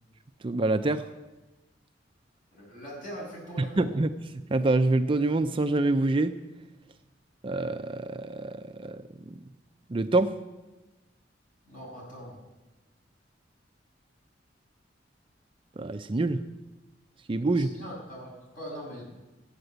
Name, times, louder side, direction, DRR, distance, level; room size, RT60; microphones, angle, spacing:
voice 1, 0.4-1.0 3.6-4.1 4.5-6.3 7.4-9.3 9.9-10.3 15.8-16.4 17.3-17.7, right 2 dB, 30° right, 9 dB, 0.4 m, -26 dB
voice 2, 2.5-3.9 11.6-12.4 17.5-19.1, equal, 45° left, -4 dB, 6.6 m, -41 dB
13.5 x 8.8 x 7.9 m, 1.1 s
head